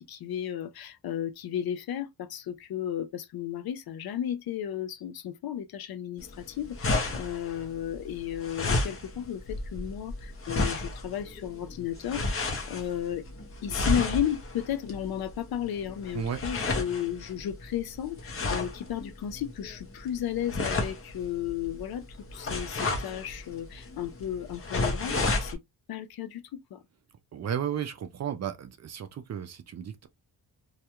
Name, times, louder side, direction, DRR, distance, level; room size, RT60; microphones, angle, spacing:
voice 1, 0.0-13.3 13.6-22.1 22.3-25.6 25.9-26.8, left 10 dB, 60° left, 0.5 m, -34 dB
sound 1, 6.2-25.5, left 2 dB, 30° left, 0.7 m, -33 dB
voice 2, 27.3-30.1, right 8 dB, 40° right, 0.4 m, -34 dB
2.4 x 2.2 x 2.8 m
cardioid pair, 120°, 42 cm